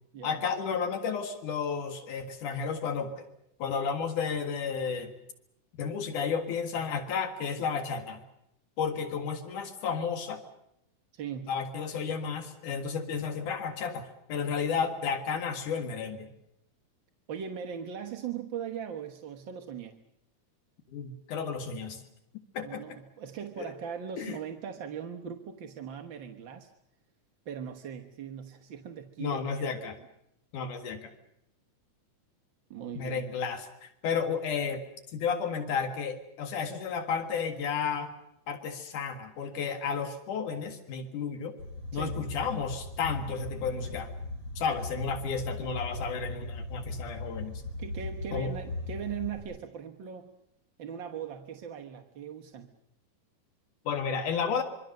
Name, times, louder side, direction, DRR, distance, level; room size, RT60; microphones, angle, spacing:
voice 1, 0.2-3.3 3.6-5.2 5.8-8.2 8.8-10.4 11.5-16.3 20.9-22.0 22.5-22.8 23.6-23.7 24.2-24.4 29.2-30.0 30.5-31.1 32.9-34.8 35.1-38.1 38.5-41.5 41.9-44.1 44.6-47.6 48.3-48.5 53.9-54.6, left 6 dB, 80° left, 7 dB, 3.2 m, -32 dB
voice 2, 11.1-11.5 17.3-20.0 22.6-26.7 27.4-29.7 30.5-30.7 32.7-33.2 41.9-42.2 47.8-50.3 50.8-52.7, right 8 dB, 50° right, 3 dB, 1.5 m, -39 dB
sound 1, 41.6-49.4, left 2 dB, 30° left, 8.1 m, -38 dB
26.0 x 24.0 x 6.6 m, 0.78 s
omnidirectional pair, 3.5 m